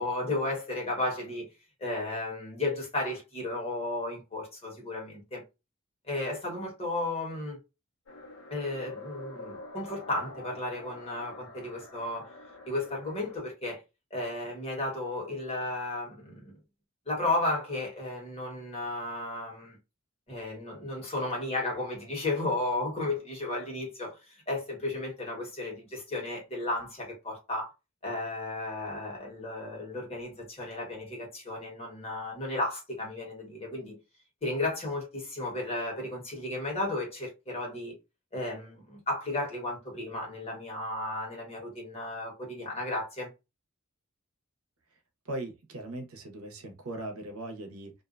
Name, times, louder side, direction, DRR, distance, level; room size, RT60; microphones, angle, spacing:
voice 1, 0.0-1.5 1.8-5.4 6.0-7.6 8.5-12.3 12.7-13.8 14.1-16.5 17.1-19.8 20.3-24.2 24.5-27.7 28.0-34.0 34.4-37.9 38.3-43.3, left 2 dB, 30° left, 1.3 m, -34 dB
sound 1, 8.1-13.4, left 2 dB, 65° left, 0.9 m, -46 dB
voice 2, 45.2-47.9, right 1 dB, 85° right, 0.8 m, -39 dB
2.5 x 2.2 x 2.5 m
head